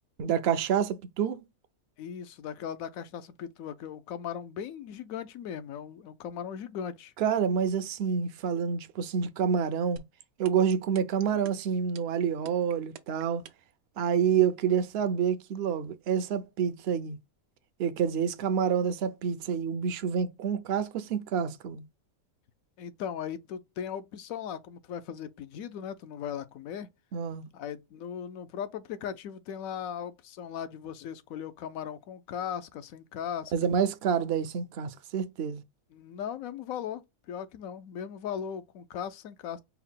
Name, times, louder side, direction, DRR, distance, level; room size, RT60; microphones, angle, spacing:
voice 1, 0.2-1.4 7.2-10.0 10.4-13.4 14.0-17.2 17.8-21.8 27.1-27.5 33.5-35.6, right 7 dB, 60° right, 0.6 m, -28 dB
voice 2, 2.0-7.1 22.8-26.9 27.5-33.5 35.9-39.6, left 8 dB, 75° left, 1.0 m, -38 dB
sound 1, 10.0-13.7, right 9 dB, 90° right, 1.1 m, -46 dB
4.6 x 2.1 x 3.6 m
omnidirectional pair, 1.5 m